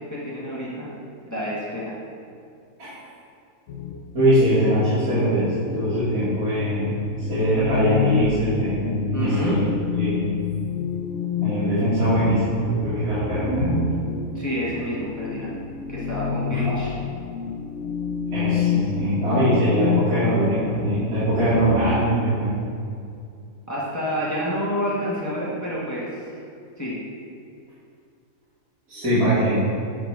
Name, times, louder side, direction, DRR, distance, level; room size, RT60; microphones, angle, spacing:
voice 1, 0.1-0.9 1.2-1.9 9.1-9.6 14.3-15.5 15.9-16.9 23.7-26.1 26.8-26.9, equal, 15° left, -7 dB, 1.1 m, -28 dB
sound 1, 3.7-22.0, left 6 dB, 65° left, 0.7 m, -29 dB
voice 2, 4.1-9.6 10.0-10.3 11.4-13.8 16.5-16.7 18.3-22.6 28.9-29.6, equal, 90° right, -13 dB, 2.8 m, -22 dB
10.0 x 3.9 x 4.7 m, 2.4 s
omnidirectional pair, 1.6 m